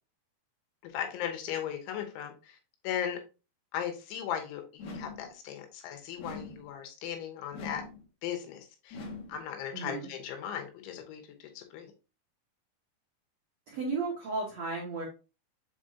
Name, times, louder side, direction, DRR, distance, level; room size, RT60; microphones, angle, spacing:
voice 1, 0.8-2.6 2.8-3.2 3.7-7.8 8.2-9.0 9.3-11.9, left 9 dB, 90° left, 5 dB, 3.5 m, -37 dB
sound 1, 4.8-5.3 6.2-6.7 7.5-8.0 8.9-9.4, left 2 dB, 65° left, 1.8 m, -42 dB
voice 2, 9.7-10.1 13.7-15.0, right 3 dB, 75° right, -2 dB, 1.5 m, -34 dB
7.1 x 5.0 x 2.8 m, 0.31 s
omnidirectional pair, 5.2 m